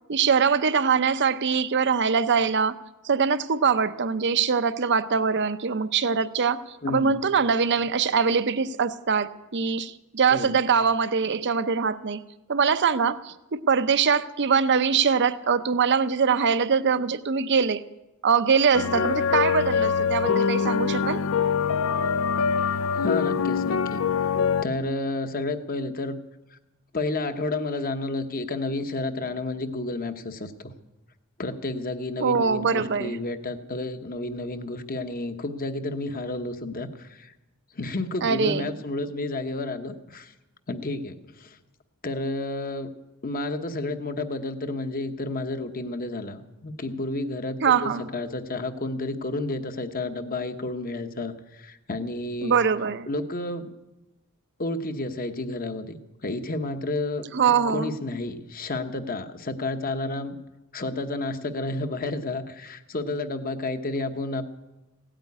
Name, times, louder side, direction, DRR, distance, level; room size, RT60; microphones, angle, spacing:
voice 1, 0.1-2.8 3.0-12.2 12.5-17.8 18.2-21.2 32.2-33.2 38.2-38.7 47.6-48.1 52.4-53.1 57.3-57.9, right 6 dB, 55° right, 14 dB, 0.7 m, -23 dB
voice 2, 6.8-7.2 10.3-10.5 22.9-24.3 24.6-26.2 26.5-26.6 26.9-30.7 31.4-37.3 37.7-40.3 40.7-41.6 42.0-42.9 43.2-52.6 53.1-53.7 54.6-57.3 57.7-60.4 60.7-64.4, left 2 dB, 40° left, 8 dB, 1.1 m, -31 dB
sound 1, 18.7-24.7, left 6 dB, 65° left, 0.4 m, -24 dB
16.5 x 9.0 x 9.7 m, 1.0 s
head